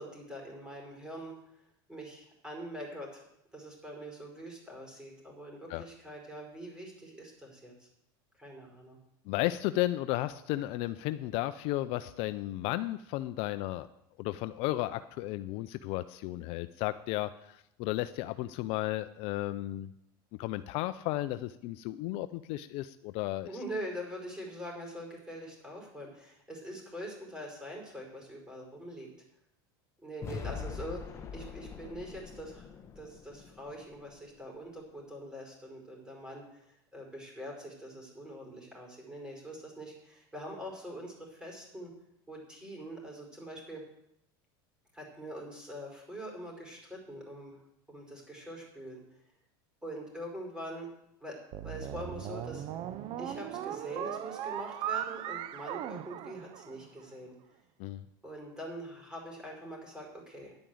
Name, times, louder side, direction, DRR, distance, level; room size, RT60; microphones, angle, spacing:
voice 1, 0.0-1.3 1.9-3.2 3.5-7.9 8.4-9.0 23.5-29.1 30.0-32.7 33.0-41.9 42.3-43.8 44.9-47.6 47.9-49.2 49.8-50.9 51.2-51.4 51.6-52.7 53.2-57.3 58.2-60.6, equal, 5° right, -1 dB, 5.1 m, -44 dB
voice 2, 9.3-13.9 14.2-19.9 20.4-23.5 57.8-58.0, left 16 dB, 55° left, 13 dB, 0.5 m, -34 dB
sound 1, 30.2-34.4, left 6 dB, 25° left, 1.1 m, -43 dB
sound 2, 51.5-57.0, right 11 dB, 45° right, 0.7 m, -38 dB
10.5 x 8.8 x 7.9 m, 0.80 s
supercardioid pair, 130°, 12 cm